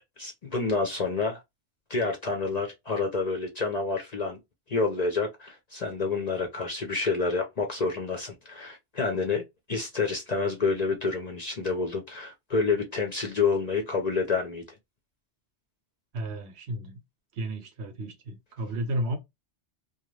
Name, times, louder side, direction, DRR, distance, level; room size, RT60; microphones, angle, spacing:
voice 1, 0.2-1.4 1.9-4.4 4.7-9.4 9.7-14.6, left 4 dB, 50° left, 0.5 m, -28 dB
voice 2, 16.1-17.0 17.4-19.2, right 1 dB, 75° right, 1.0 m, -33 dB
2.5 x 2.3 x 3.0 m
omnidirectional pair, 1.1 m